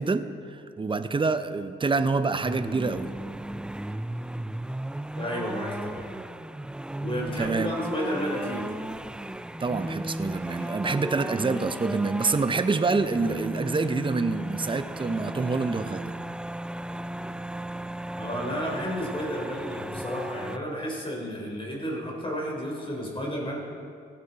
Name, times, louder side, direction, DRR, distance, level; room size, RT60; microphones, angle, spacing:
voice 1, 0.0-3.1 7.4-7.8 9.6-16.1, right 4 dB, 25° right, 11 dB, 0.8 m, -27 dB
sound 1, 2.4-20.6, right 1 dB, 5° right, 0.3 m, -35 dB
voice 2, 5.2-6.1 7.0-8.6 18.2-23.6, equal, 25° left, -1 dB, 3.7 m, -32 dB
16.0 x 10.5 x 4.1 m, 2.3 s
supercardioid pair, 65°, 20 cm